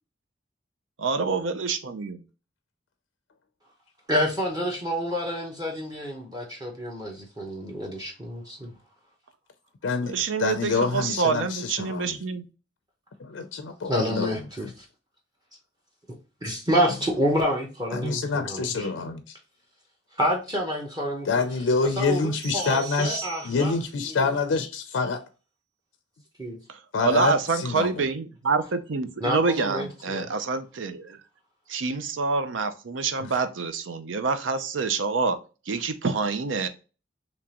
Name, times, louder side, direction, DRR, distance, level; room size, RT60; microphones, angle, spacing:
voice 1, 1.0-2.2 10.1-12.5 26.7-31.2 31.7-35.4 35.7-36.7, right 4 dB, 85° right, 0.5 m, -27 dB
voice 2, 4.1-8.7 13.9-14.8 16.4-18.9 20.2-21.3 22.0-23.7 26.4-26.6 29.2-30.3, equal, 20° right, 0.7 m, -28 dB
voice 3, 9.8-10.1 10.4-12.2 13.2-14.4 17.9-19.3 21.3-25.2 26.9-27.9 33.2-33.3, left 4 dB, 90° left, 0.5 m, -26 dB
sound 1, 22.4-23.9, right 14 dB, 45° right, 1.5 m, -39 dB
3.6 x 3.0 x 2.8 m
head